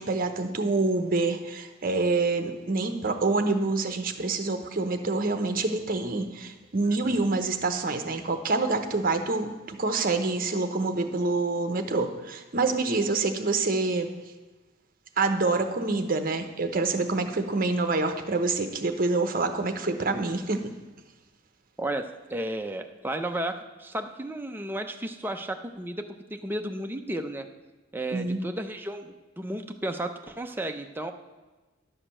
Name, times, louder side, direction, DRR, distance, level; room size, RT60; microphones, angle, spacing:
voice 1, 0.0-14.1 15.2-20.7 28.1-28.4, right 3 dB, 45° right, 7 dB, 0.8 m, -27 dB
voice 2, 21.8-27.5 27.9-31.1, right 1 dB, 10° right, 5 dB, 0.6 m, -33 dB
11.0 x 5.0 x 7.3 m, 1.2 s
head